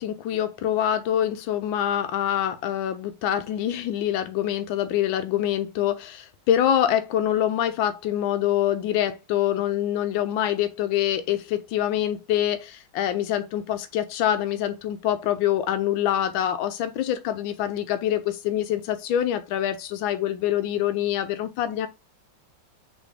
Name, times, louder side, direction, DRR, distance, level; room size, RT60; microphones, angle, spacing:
voice 1, 0.0-21.9, left 11 dB, 90° left, 1.4 m, -25 dB
4.1 x 3.4 x 3.2 m
omnidirectional pair, 2.1 m